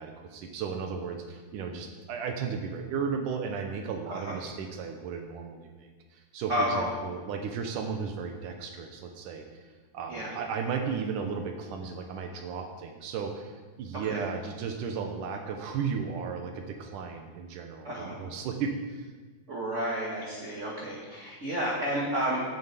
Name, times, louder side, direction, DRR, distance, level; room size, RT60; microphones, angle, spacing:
voice 1, 0.0-9.6 9.9-19.1, right 6 dB, 90° right, 4 dB, 2.6 m, -35 dB
voice 2, 6.5-6.9 10.1-10.4 14.1-14.2 17.8-18.2 19.5-22.4, equal, 35° right, -3 dB, 1.4 m, -31 dB
11.5 x 7.8 x 8.3 m, 1.4 s
omnidirectional pair, 3.5 m